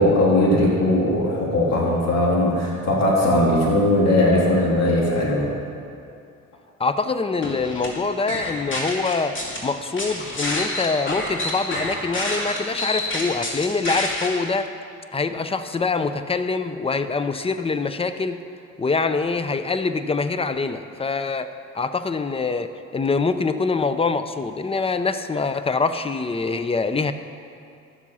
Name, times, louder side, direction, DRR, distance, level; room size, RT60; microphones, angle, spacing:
voice 1, 0.0-5.5, left 1 dB, 60° left, -4 dB, 2.7 m, -19 dB
voice 2, 6.8-9.4 9.6-14.7 15.1-18.4 18.8-27.1, left 4 dB, 20° left, 10 dB, 0.6 m, -24 dB
sound 1, 7.4-7.9 8.3-9.6 10.0-14.3, left 1 dB, 40° left, 2.4 m, -27 dB
12.5 x 7.5 x 5.5 m, 2.5 s
cardioid pair, 90°, 30 cm